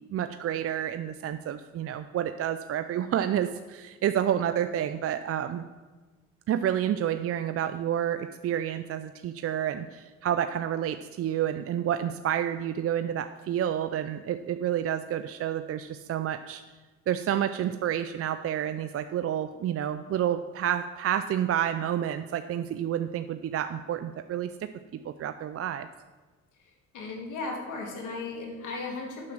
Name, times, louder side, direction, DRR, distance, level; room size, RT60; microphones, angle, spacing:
voice 1, 0.1-5.6 6.5-16.6 17.1-24.7 25.0-25.9, right 10 dB, 50° right, 10 dB, 0.5 m, -29 dB
voice 2, 26.9-29.3, left 3 dB, 85° left, 1 dB, 2.3 m, -36 dB
7.4 x 6.0 x 7.6 m, 1.4 s
cardioid pair, 90°, 30 cm